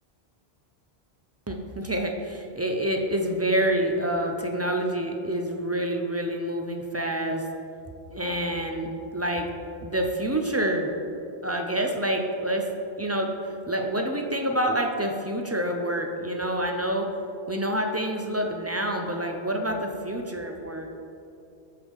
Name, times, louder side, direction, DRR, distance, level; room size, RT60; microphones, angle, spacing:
voice 1, 1.5-7.4 8.1-9.5 9.8-10.9 11.4-12.7 13.0-17.1 17.5-20.9, right 1 dB, 20° right, 3 dB, 0.4 m, -27 dB
13.0 x 4.9 x 3.6 m, 2.7 s
omnidirectional pair, 1.0 m